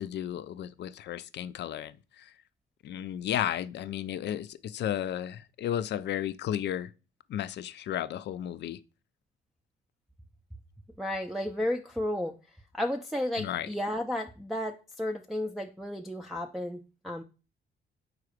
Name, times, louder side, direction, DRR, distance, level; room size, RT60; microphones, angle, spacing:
voice 1, 0.0-2.3 2.8-6.9 7.3-8.8 13.4-13.7, left 11 dB, 60° left, 0.4 m, -33 dB
voice 2, 11.0-12.3 12.7-17.2, left 1 dB, ahead, 0.5 m, -33 dB
4.7 x 4.1 x 4.9 m
cardioid pair, 90°, 20 cm